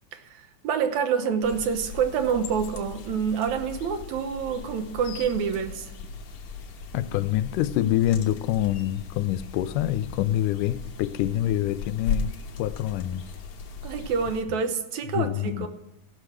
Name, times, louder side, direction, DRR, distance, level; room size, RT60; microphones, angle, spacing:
voice 1, 0.1-5.9 13.8-15.7, right 6 dB, 70° right, 2.2 m, -27 dB
sound 1, 1.4-14.4, left 5 dB, 70° left, 2.6 m, -37 dB
voice 2, 6.9-12.3 12.6-13.2 15.2-15.7, left 13 dB, 90° left, 2.2 m, -26 dB
15.5 x 6.5 x 7.5 m
omnidirectional pair, 3.6 m